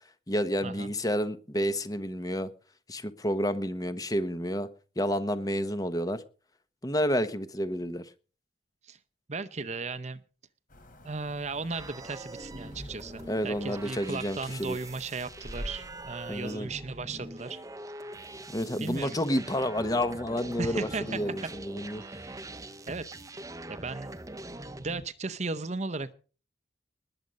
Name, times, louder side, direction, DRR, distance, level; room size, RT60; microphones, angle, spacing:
voice 1, 0.3-2.5 2.9-4.7 5.0-6.2 6.8-8.0 13.3-14.8 16.3-16.7 18.5-22.0, equal, 20° left, 1.1 m, -30 dB
voice 2, 9.3-10.2 11.0-17.6 18.8-19.2 20.6-21.5 22.0-22.5 22.9-23.0 23.7-24.1 24.8-26.1, right 3 dB, 40° right, 0.8 m, -36 dB
sound 1, 10.7-16.5, equal, 50° left, 3.4 m, -46 dB
sound 2, 11.7-25.1, right 2 dB, 20° right, 0.9 m, -43 dB
20.0 x 7.8 x 5.3 m
head